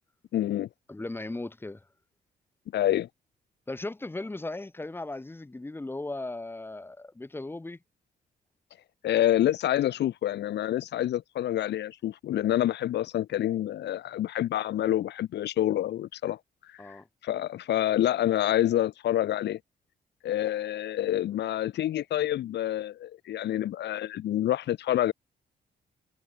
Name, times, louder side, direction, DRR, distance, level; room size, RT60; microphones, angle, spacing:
voice 1, 0.3-0.7 2.7-3.1 9.0-16.4 16.7-19.6 20.2-25.1, left 12 dB, 90° left, 1.0 m, -27 dB
voice 2, 0.9-1.8 3.7-7.8 16.8-17.1, left 2 dB, 15° left, 4.6 m, -37 dB
wide cardioid pair, 155°, 17 cm